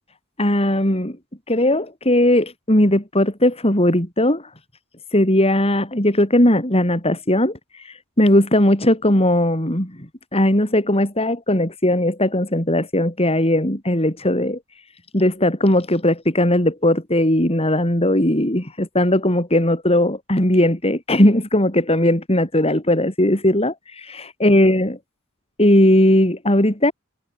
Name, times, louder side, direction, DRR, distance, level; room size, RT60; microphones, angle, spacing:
voice 1, 0.4-1.2 1.5-4.5 5.1-14.6 15.1-25.0 25.6-26.9, left 1 dB, 30° left, 5.9 m, -18 dB
head